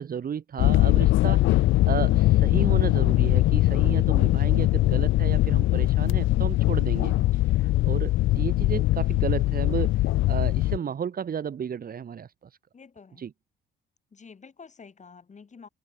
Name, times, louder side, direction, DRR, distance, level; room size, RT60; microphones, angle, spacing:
voice 1, 0.0-1.4 1.8-7.1 7.8-10.0 10.3-12.3 13.2-13.3, right 7 dB, 45° right, 1.6 m, -33 dB
sound 1, 0.6-10.8, left 16 dB, 80° left, 0.6 m, -21 dB
voice 2, 12.7-13.3 14.1-15.7, left 5 dB, 35° left, 5.4 m, -49 dB
cardioid pair, 90°, 20 cm